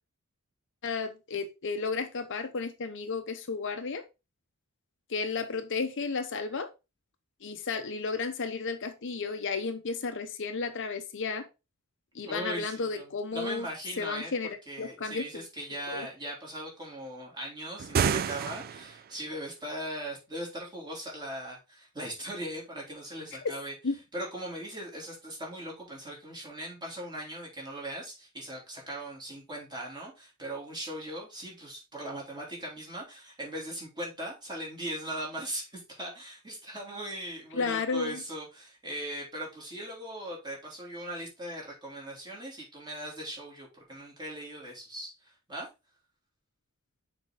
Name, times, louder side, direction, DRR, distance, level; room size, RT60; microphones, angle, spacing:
voice 1, 0.8-4.0 5.1-6.7 7.4-11.5 12.1-13.7 14.0-15.5 15.9-16.1 23.8-24.0 37.5-38.2, left 4 dB, 55° left, 0.8 m, -33 dB
voice 2, 12.2-14.3 14.7-23.7 24.1-45.1 45.5-45.7, right 1 dB, 20° right, 3.0 m, -39 dB
sound 1, 17.8-19.1, right 7 dB, 45° right, 0.3 m, -29 dB
6.6 x 4.4 x 3.8 m
head